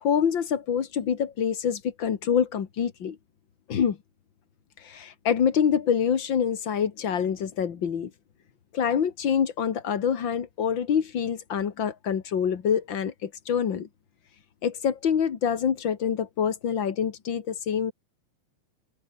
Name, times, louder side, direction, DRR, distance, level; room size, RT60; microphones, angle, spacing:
voice 1, 0.0-3.2 3.7-4.0 4.8-8.1 8.7-13.9 14.6-17.9, left 7 dB, 45° left, 1.7 m, -26 dB
omnidirectional pair, 4.1 m